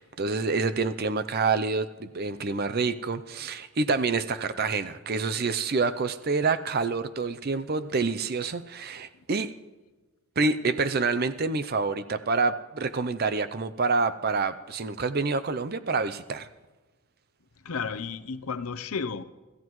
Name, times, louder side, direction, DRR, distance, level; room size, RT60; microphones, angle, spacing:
voice 1, 0.0-9.5 10.4-16.5, right 4 dB, 45° right, 12 dB, 0.5 m, -27 dB
voice 2, 17.6-19.2, left 5 dB, 75° left, 12 dB, 0.7 m, -32 dB
26.0 x 14.5 x 3.1 m, 1.2 s
head